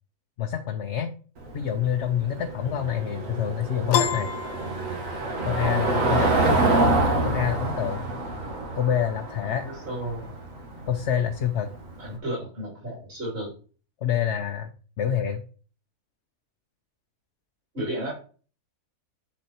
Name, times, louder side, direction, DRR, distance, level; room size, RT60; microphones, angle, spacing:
voice 1, 0.4-1.1 1.5-4.3 5.4-6.6 7.2-8.0 8.7-9.7 10.9-11.7 14.0-14.7 15.0-15.4, left 9 dB, 55° left, 5 dB, 1.0 m, -27 dB
Car passing by / Engine, 1.4-12.0, right 2 dB, 65° right, 2.0 m, -26 dB
Piano, 3.9-5.5, left 8 dB, 75° left, 1.1 m, -28 dB
voice 2, 5.9-6.5 9.7-10.4 12.0-13.5 17.7-18.1, right 1 dB, 40° right, -5 dB, 3.5 m, -33 dB
10.5 x 4.3 x 4.4 m, 0.39 s
omnidirectional pair, 1.5 m